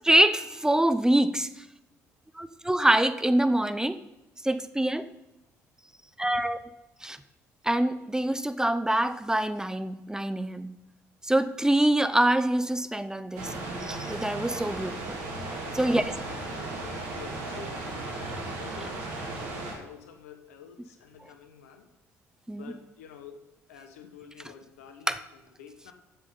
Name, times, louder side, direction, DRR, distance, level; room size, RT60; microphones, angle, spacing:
voice 1, 0.0-1.6 2.4-4.0 4.4-5.1 6.2-6.6 7.0-7.2 7.6-10.7 11.2-15.2 15.7-16.0 22.5-22.7 25.1-25.2, right 1 dB, 10° right, 12 dB, 0.7 m, -25 dB
sound 1, 13.4-19.7, right 2 dB, 75° right, 2.2 m, -36 dB
voice 2, 15.6-21.9 22.6-23.4 23.7-25.9, left 6 dB, 85° left, 6 dB, 1.1 m, -48 dB
8.6 x 7.5 x 5.4 m, 0.95 s
hypercardioid pair, 50°, 8 cm